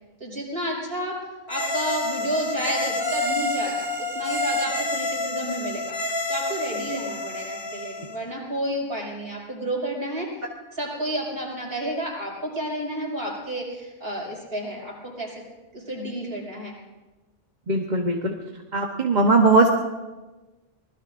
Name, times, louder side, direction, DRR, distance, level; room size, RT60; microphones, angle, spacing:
voice 1, 0.2-1.2 1.5-6.0 6.3-10.3 10.7-15.3 15.7-16.7, right 1 dB, 60° right, -3 dB, 5.8 m, -31 dB
sound 1, 1.5-8.2, left 2 dB, 55° left, 3.9 m, -28 dB
voice 2, 17.7-18.3 18.7-19.7, right 3 dB, 45° right, 1 dB, 1.2 m, -19 dB
25.5 x 19.5 x 2.6 m, 1.2 s
omnidirectional pair, 1.1 m